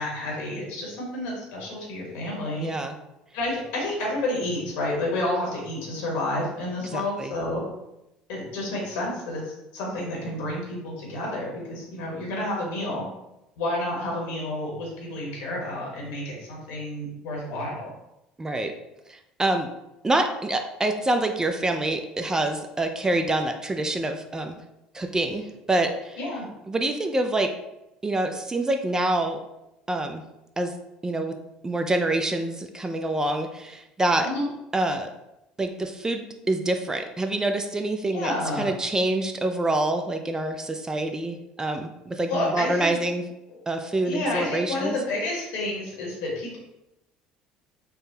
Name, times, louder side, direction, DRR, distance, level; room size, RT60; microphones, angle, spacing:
voice 1, 0.0-2.7 3.3-7.6 8.3-13.0 13.6-17.9 26.2-26.5 34.2-34.4 38.1-38.7 42.3-42.9 44.0-46.6, left 1 dB, 70° left, -2 dB, 1.1 m, -30 dB
voice 2, 2.6-2.9 6.9-7.3 18.4-18.7 19.1-19.7 20.0-24.6 24.9-26.2 26.7-27.5 28.0-29.4 29.9-30.2 30.6-30.7 31.0-31.4 31.6-34.3 34.7-35.1 35.6-38.3 38.6-43.2 43.7-45.0, right 2 dB, 20° right, 5 dB, 0.3 m, -26 dB
3.5 x 2.1 x 2.7 m, 0.91 s
hypercardioid pair, 70°, 3 cm